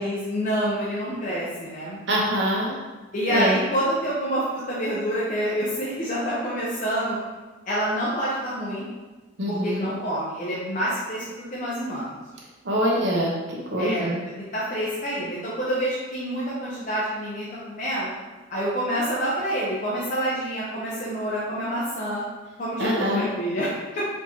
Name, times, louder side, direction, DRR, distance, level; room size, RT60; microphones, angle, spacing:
voice 1, 0.0-2.0 3.1-7.2 7.7-8.8 9.5-12.1 13.8-14.1 14.5-18.1 18.5-22.2 22.6-24.0, equal, 45° left, -7 dB, 0.7 m, -27 dB
voice 2, 2.1-2.7 3.3-3.6 9.4-9.9 12.6-14.2 22.8-23.2, equal, 65° right, -4 dB, 1.0 m, -24 dB
4.3 x 3.0 x 2.9 m, 1.2 s
head